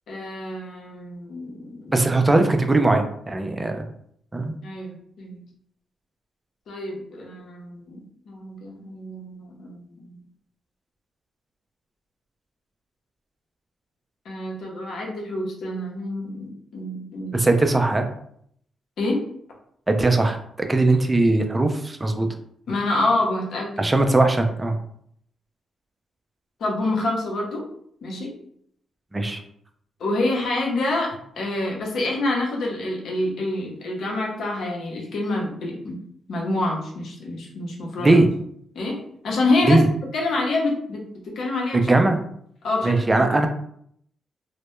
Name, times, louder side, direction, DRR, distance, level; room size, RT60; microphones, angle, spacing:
voice 1, 0.1-2.1 4.6-5.4 6.7-8.0 8.3-10.2 14.3-17.5 19.0-19.2 22.7-23.7 26.6-27.6 28.0-28.3 30.0-36.0 36.3-38.2 38.7-39.8 40.1-41.9 42.6-43.3, left 2 dB, 75° left, -1 dB, 0.7 m, -27 dB
voice 2, 1.9-3.8 4.3-4.6 17.3-18.1 19.9-20.4 20.7-22.3 23.8-24.8 29.1-29.4 38.0-38.3 39.6-39.8 41.7-42.2 42.8-43.5, right 2 dB, 20° right, 5 dB, 0.4 m, -19 dB
2.1 x 2.1 x 2.9 m, 0.68 s
cardioid pair, 65°, 0 cm